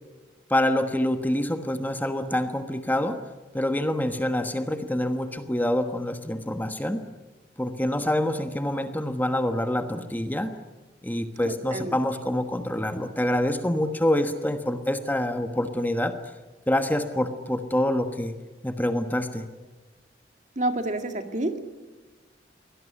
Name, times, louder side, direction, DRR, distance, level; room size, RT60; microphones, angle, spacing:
voice 1, 0.5-3.2 3.5-7.0 7.6-10.5 11.0-16.2 16.7-18.3 18.6-19.4, left 1 dB, 10° left, 8 dB, 1.3 m, -26 dB
voice 2, 11.4-12.0 20.6-21.6, right 1 dB, 45° right, 7 dB, 2.1 m, -29 dB
24.0 x 18.0 x 10.0 m, 1.2 s
head